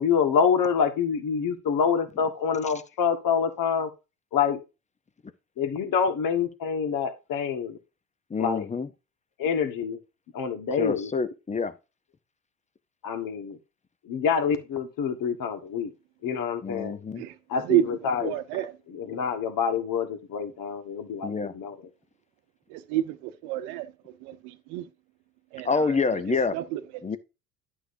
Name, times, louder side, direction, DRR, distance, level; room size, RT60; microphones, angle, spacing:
voice 1, 0.0-3.9 4.3-4.6 5.6-7.8 8.4-8.7 9.4-10.0 10.3-11.1 13.0-13.6 14.1-15.9 16.2-16.9 17.5-18.3 18.9-21.8, left 6 dB, 45° left, 1.7 m, -26 dB
voice 2, 8.3-8.9 10.8-11.7 16.6-17.2 21.2-21.6 25.6-26.6 27.0-27.2, left 4 dB, 15° left, 0.7 m, -27 dB
voice 3, 17.2-18.8 22.7-24.9 25.5-26.8, right 13 dB, 60° right, 1.0 m, -30 dB
11.0 x 6.3 x 2.7 m
figure-of-eight pair, 60°, 46 cm